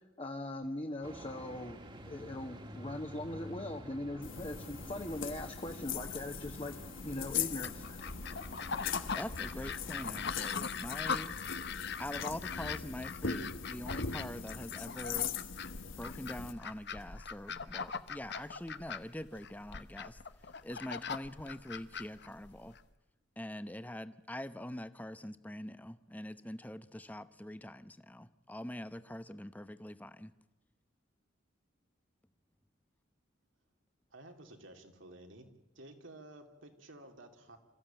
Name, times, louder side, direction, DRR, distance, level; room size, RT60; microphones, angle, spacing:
voice 1, 0.2-1.8 2.1-6.8 7.0-8.0, left 1 dB, 30° left, 3 dB, 1.3 m, -40 dB
sound 1, 1.0-10.2, equal, 25° right, 1.8 m, -50 dB
sound 2, 4.2-16.5, left 6 dB, 90° left, 1.3 m, -41 dB
sound 3, 7.6-22.8, left 6 dB, 60° left, 1.0 m, -41 dB
voice 2, 8.8-11.4 12.0-15.3 16.0-22.8 23.4-30.3, left 1 dB, 10° left, 12 dB, 0.8 m, -44 dB
voice 3, 34.1-35.5 35.7-37.6, right 1 dB, 85° right, 4 dB, 3.1 m, -53 dB
27.0 x 15.0 x 9.0 m, 1.1 s
head